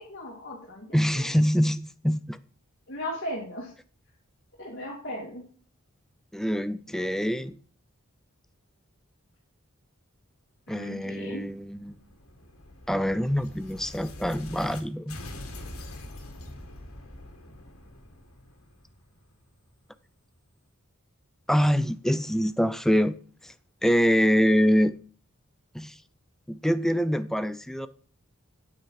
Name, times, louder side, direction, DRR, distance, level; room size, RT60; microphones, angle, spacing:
voice 1, 0.0-1.0 2.9-3.7 4.6-5.4 10.7-11.5, left 1 dB, 55° left, 2.6 m, -37 dB
voice 2, 0.9-2.4 6.3-7.6 10.7-12.0 12.9-15.2 21.5-23.2 23.4-23.5 23.8-24.9 25.7-26.0 26.5-27.9, equal, ahead, 0.4 m, -25 dB
sound 1, 11.4-14.8 15.1-19.8, left 1 dB, 90° left, 2.2 m, -44 dB
9.0 x 8.7 x 4.9 m
head